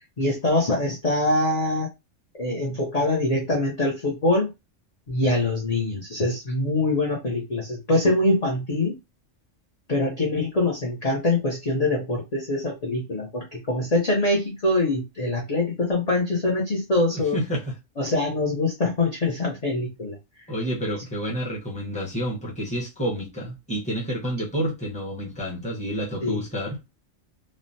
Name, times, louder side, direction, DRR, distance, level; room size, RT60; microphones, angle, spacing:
voice 1, 0.2-1.9 2.4-4.5 5.1-9.0 9.9-17.4 18.0-20.2 26.2-26.4, left 2 dB, 40° left, 0.6 m, -24 dB
voice 2, 17.1-17.7 20.5-26.8, equal, 5° left, 0.8 m, -29 dB
3.1 x 2.1 x 2.6 m
omnidirectional pair, 1.3 m